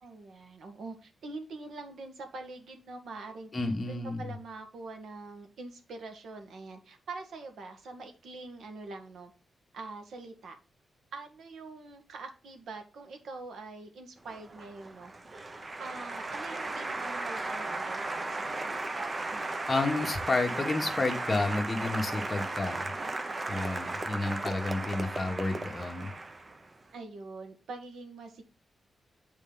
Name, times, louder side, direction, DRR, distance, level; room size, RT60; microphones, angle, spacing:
voice 1, 0.0-9.3 9.7-10.6 11.1-15.1 15.8-18.6 19.3-19.6 26.9-28.4, right 3 dB, 80° right, 5 dB, 1.8 m, -44 dB
voice 2, 3.5-4.3 19.7-22.9 23.5-26.1, left 2 dB, 25° left, 3 dB, 1.6 m, -31 dB
Applause, 14.3-26.7, right 2 dB, 25° right, 0.8 m, -36 dB
8.8 x 4.3 x 3.9 m, 0.35 s
wide cardioid pair, 125°, 0 cm